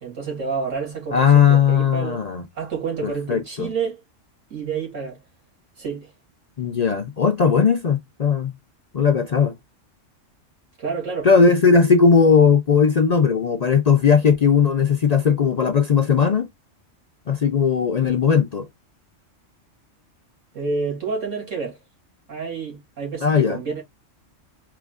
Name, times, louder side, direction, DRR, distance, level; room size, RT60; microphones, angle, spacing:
voice 1, 0.0-2.2 2.5-4.0 4.5-5.2 5.8-6.1 10.8-11.3 20.5-21.8 22.3-23.8, right 5 dB, 80° right, 3.0 m, -29 dB
voice 2, 1.1-2.4 3.0-3.7 6.6-8.5 8.9-9.5 11.2-16.5 17.3-18.7 23.2-23.6, left 6 dB, 55° left, 0.4 m, -17 dB
5.0 x 3.1 x 2.4 m
omnidirectional pair, 1.3 m